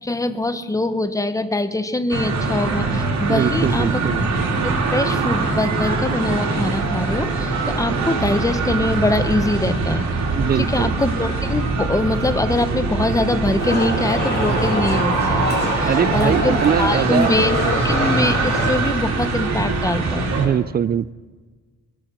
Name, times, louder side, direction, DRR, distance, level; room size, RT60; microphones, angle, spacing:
voice 1, 0.0-4.0 4.6-10.0 10.5-17.6 17.8-20.3, left 2 dB, 10° left, 11 dB, 1.1 m, -23 dB
sound 1, 2.1-20.5, right 3 dB, 65° right, 3.4 m, -22 dB
voice 2, 3.3-4.3 10.4-10.9 15.8-17.3 17.6-18.1 20.4-21.1, right 8 dB, 35° right, 22 dB, 0.4 m, -22 dB
sound 2, 13.6-18.7, left 2 dB, 35° left, 5.5 m, -26 dB
22.0 x 8.2 x 6.3 m, 1.3 s
cardioid pair, 90°, 30 cm